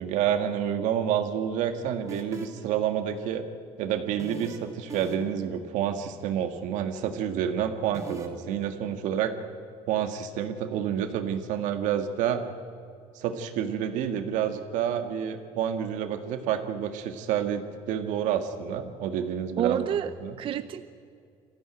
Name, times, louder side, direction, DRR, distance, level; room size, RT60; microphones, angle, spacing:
voice 1, 0.0-3.4 3.8-9.3 9.9-12.4 13.1-20.3, right 9 dB, 85° right, 7 dB, 1.8 m, -29 dB
sound 1, 2.1-2.7 4.2-4.6 4.9-5.4 7.9-8.3, right 3 dB, 25° right, 2.8 m, -39 dB
voice 2, 19.6-20.9, right 9 dB, 45° right, 11 dB, 0.6 m, -29 dB
23.5 x 15.0 x 9.1 m, 2.5 s
cardioid pair, 140°, 12 cm